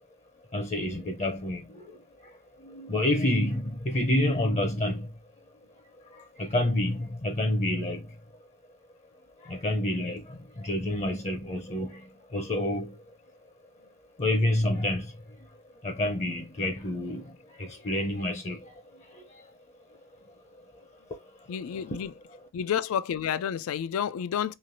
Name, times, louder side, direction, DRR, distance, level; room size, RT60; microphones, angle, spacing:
voice 1, 0.5-1.9 2.6-5.1 6.4-8.0 9.5-12.0 12.3-12.9 14.2-15.1 15.8-17.2 17.6-18.6, left 1 dB, 35° left, 0.5 m, -28 dB
voice 2, 21.5-22.1 22.5-24.6, left 8 dB, 85° left, 0.3 m, -30 dB
3.2 x 2.5 x 2.5 m
head